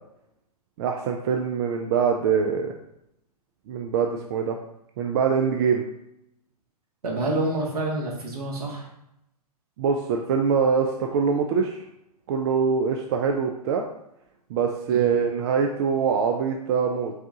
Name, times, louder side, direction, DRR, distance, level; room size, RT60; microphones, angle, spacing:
voice 1, 0.8-2.7 3.7-4.6 5.0-5.8 9.8-11.8 12.3-13.8 14.5-17.1, right 6 dB, 40° right, 2 dB, 0.4 m, -23 dB
voice 2, 7.0-8.9 14.9-15.1, right 2 dB, 70° right, -1 dB, 1.3 m, -28 dB
5.5 x 2.3 x 2.7 m, 0.81 s
figure-of-eight pair, 115°, 20 cm